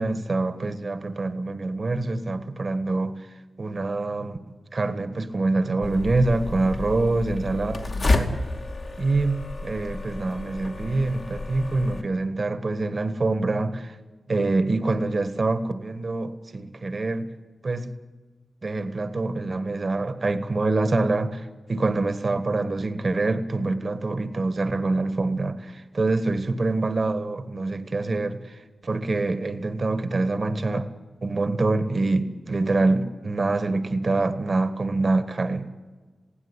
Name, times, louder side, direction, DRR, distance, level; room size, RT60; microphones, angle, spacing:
voice 1, 0.0-3.3 3.6-4.4 4.7-8.4 9.0-14.0 14.3-17.3 17.6-17.9 18.6-30.9 31.2-35.7, right 2 dB, 50° right, 1.6 m, -25 dB
sound 1, 5.8-12.0, left 2 dB, 55° left, 2.4 m, -30 dB
21.5 x 16.0 x 9.9 m
cardioid pair, 60°, 0 cm